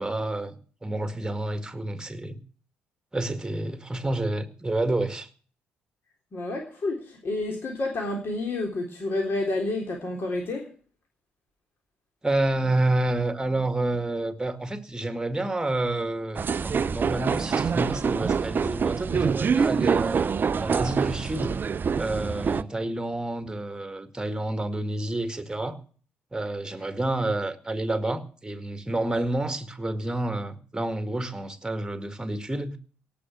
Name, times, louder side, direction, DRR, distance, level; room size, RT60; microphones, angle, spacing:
voice 1, 0.0-2.4 3.1-5.3 12.2-21.6 22.0-25.8 26.3-32.8, right 2 dB, 10° right, 1.8 m, -29 dB
voice 2, 6.3-10.7, left 2 dB, 45° left, 3.6 m, -29 dB
sound 1, 16.4-22.6, right 6 dB, 35° right, 0.6 m, -25 dB
17.5 x 6.1 x 9.0 m
figure-of-eight pair, 45°, 6 cm